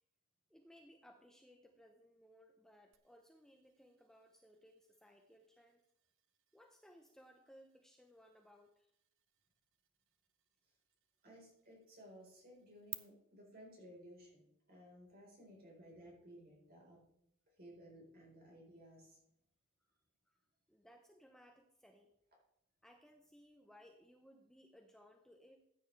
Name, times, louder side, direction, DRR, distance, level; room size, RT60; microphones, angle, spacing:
voice 1, 0.5-5.8 6.5-8.9 19.8-19.9 20.3-20.4 20.7-22.1 22.8-25.6, equal, ahead, 3 dB, 0.7 m, -63 dB
sound 1, 2.9-12.9, right 20 dB, 60° right, 0.7 m, -59 dB
voice 2, 11.2-17.0 17.6-19.2, equal, 45° right, -2 dB, 4.0 m, -58 dB
14.5 x 9.0 x 3.2 m, 0.75 s
head